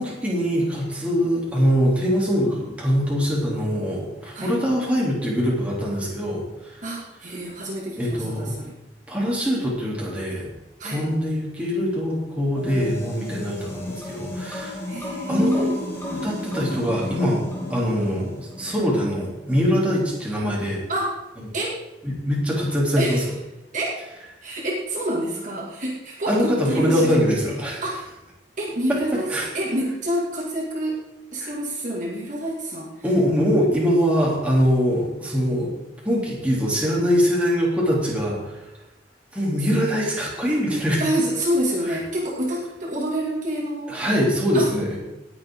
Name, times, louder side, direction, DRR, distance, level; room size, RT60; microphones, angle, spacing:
voice 1, 0.0-6.8 7.9-8.6 9.1-10.5 10.9-14.8 15.3-15.6 16.1-20.8 22.0-23.2 26.3-27.8 28.9-29.5 31.4-31.5 33.0-35.7 36.0-38.6 39.3-41.0 43.9-45.0, equal, 10° right, -5 dB, 3.4 m, -23 dB
voice 2, 6.8-8.7 10.8-11.1 14.9-15.8 20.9-21.2 21.5-21.8 23.0-23.3 23.7-24.0 24.4-27.1 27.8-28.1 28.6-31.0 31.3-33.1 41.0-43.9 44.5-44.7, right 1 dB, 45° right, -4 dB, 2.6 m, -27 dB
sound 1, 12.5-18.8, left 1 dB, 15° left, 2.4 m, -34 dB
19.0 x 8.0 x 3.9 m, 0.98 s
head